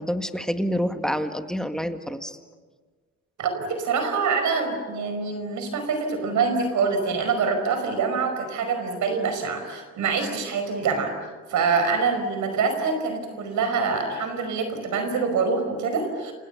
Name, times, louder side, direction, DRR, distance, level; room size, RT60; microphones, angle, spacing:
voice 1, 0.0-2.4, equal, ahead, 7 dB, 2.0 m, -27 dB
voice 2, 3.4-11.1 11.5-16.3, right 5 dB, 75° right, 7 dB, 5.2 m, -25 dB
29.0 x 28.0 x 7.0 m, 1.5 s
cardioid pair, 90°, 30 cm